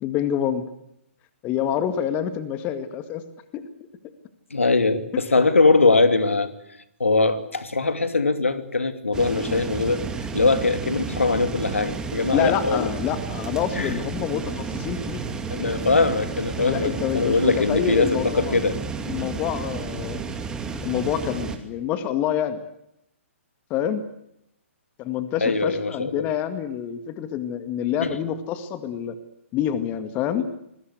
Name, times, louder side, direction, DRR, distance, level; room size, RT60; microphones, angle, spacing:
voice 1, 0.0-0.6 1.4-3.2 3.5-3.7 12.3-15.3 16.6-18.6 19.0-20.2 20.8-22.6 23.7-24.0 25.0-29.2 29.5-30.5, left 9 dB, 20° left, 11 dB, 1.9 m, -27 dB
voice 2, 4.5-6.5 7.0-12.9 13.7-13.9 15.5-18.8 25.4-26.3 28.0-28.2, left 3 dB, 70° left, 10 dB, 2.8 m, -21 dB
sound 1, 9.1-21.6, right 4 dB, 10° right, 2.6 m, -32 dB
27.5 x 21.0 x 8.2 m, 0.77 s
figure-of-eight pair, 125°, 7 cm